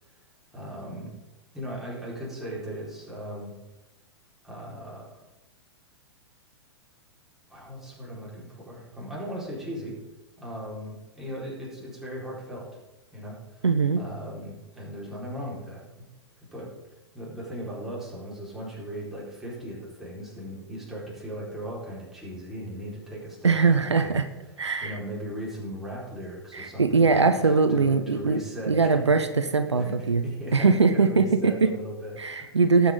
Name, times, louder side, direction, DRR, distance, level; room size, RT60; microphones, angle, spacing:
voice 1, 0.5-1.1 1.5-3.5 4.4-5.2 7.5-10.0 10.4-12.8 13.1-13.7 13.9-15.9 16.5-16.7 17.1-24.2 24.8-29.1 29.8-32.6, equal, 5° right, -7 dB, 4.7 m, -38 dB
voice 2, 13.6-14.0 23.4-24.2 24.6-25.0 26.5-28.4 28.7-30.2 30.5-31.7 32.2-32.9, right 4 dB, 75° right, 9 dB, 0.8 m, -21 dB
18.5 x 8.5 x 3.9 m, 1.1 s
figure-of-eight pair, 105°, 15 cm